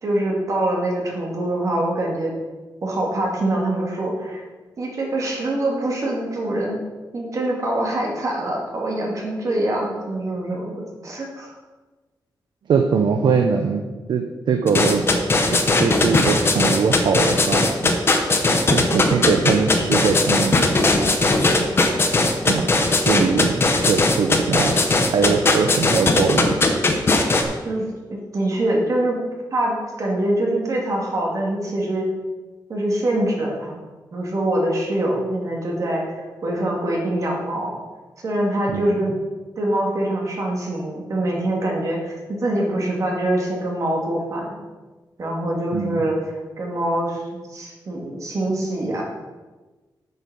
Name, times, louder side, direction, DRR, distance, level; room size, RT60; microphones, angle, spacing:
voice 1, 0.0-2.3 2.8-4.4 4.8-6.8 7.1-11.6 27.6-29.2 29.5-32.0 32.7-33.8 34.1-37.7 38.2-39.1 39.6-44.6 45.2-49.0, right 1 dB, 45° right, -2 dB, 2.2 m, -24 dB
voice 2, 12.7-13.8 14.1-15.1 15.5-17.7 18.7-20.6 22.5-24.7 25.1-26.5 38.7-38.8 45.7-46.0, right 5 dB, 80° right, 5 dB, 0.8 m, -21 dB
sound 1, 14.7-27.4, left 2 dB, 30° left, 1.0 m, -18 dB
8.2 x 6.8 x 6.2 m, 1.2 s
wide cardioid pair, 175°, 8 cm